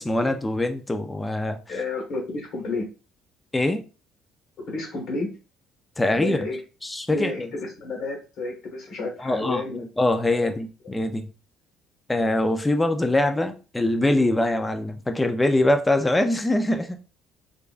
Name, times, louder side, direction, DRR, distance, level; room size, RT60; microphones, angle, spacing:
voice 1, 0.0-1.6 3.5-3.8 6.0-6.4 6.8-7.5 9.2-11.3 12.1-16.9, left 1 dB, 10° left, 0.4 m, -23 dB
voice 2, 1.7-2.9 4.6-5.3 6.1-6.6 7.1-9.8 10.8-11.0, left 2 dB, 50° left, 1.3 m, -31 dB
3.8 x 3.4 x 2.4 m
cardioid pair, 180°, 0 cm